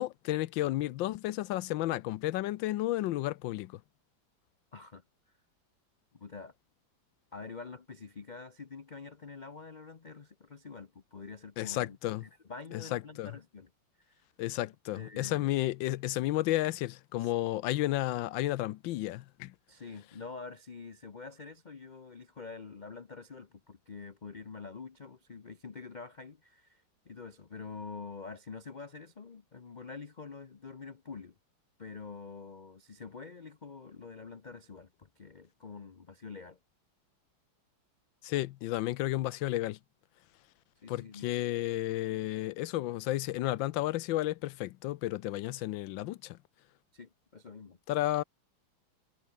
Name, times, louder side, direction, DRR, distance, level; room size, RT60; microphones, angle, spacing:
voice 1, 0.0-3.7 11.6-12.2 12.9-13.3 14.4-19.5 38.2-39.8 40.9-46.4 47.9-48.2, left 15 dB, 80° left, 1.3 m, -32 dB
voice 2, 4.7-5.0 6.1-6.5 7.3-13.7 14.0-14.3 14.9-15.5 17.2-17.7 19.7-31.4 31.8-36.6 40.8-41.5 46.9-47.8, left 4 dB, 50° left, 0.5 m, -46 dB
omnidirectional pair, 2.1 m